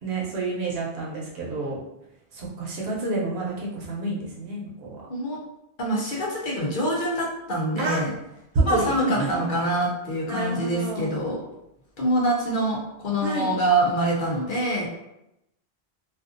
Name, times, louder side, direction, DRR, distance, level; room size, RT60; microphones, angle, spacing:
voice 1, 0.0-1.8 2.3-5.0 7.8-8.0 8.5-9.4 10.3-11.1 13.2-13.5, right 2 dB, 70° right, -4 dB, 0.9 m, -28 dB
voice 2, 5.8-8.1 8.6-11.4 12.0-14.9, right 1 dB, 55° left, -3 dB, 0.7 m, -25 dB
2.5 x 2.4 x 2.4 m, 0.85 s
omnidirectional pair, 1.1 m